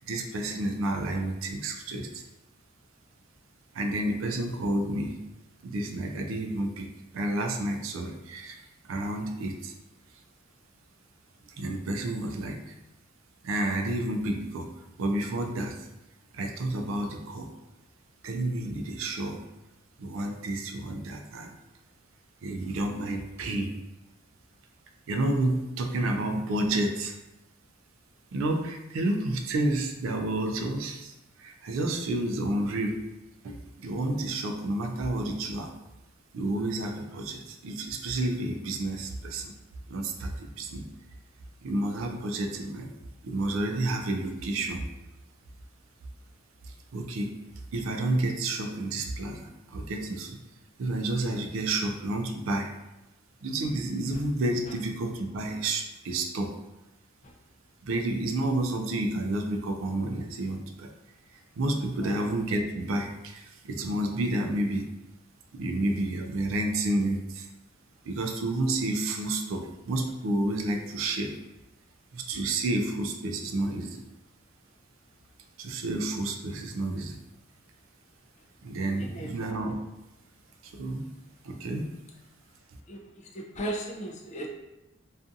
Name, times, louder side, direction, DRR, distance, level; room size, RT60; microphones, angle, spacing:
voice 1, 0.1-2.2 3.7-5.2 5.6-8.6 8.9-9.7 11.6-12.6 13.4-14.7 15.0-15.9 16.3-17.5 18.2-19.4 20.0-21.6 22.4-23.7 25.1-27.1 28.3-31.1 31.4-33.0 33.4-35.7 36.3-39.5 39.9-40.9 41.6-42.9 43.2-44.9 46.9-47.4 47.7-50.4 50.8-52.7 53.4-56.6 57.8-60.9 61.6-64.8 65.5-67.5 68.1-71.3 72.1-74.0 75.6-77.2 78.6-79.8 80.6-81.1 81.4-81.9, right 2 dB, 75° right, 4 dB, 0.3 m, -30 dB
voice 2, 79.0-79.3 82.9-83.0 83.3-84.5, right 1 dB, 35° left, 0 dB, 0.4 m, -36 dB
2.5 x 2.4 x 2.5 m, 0.96 s
head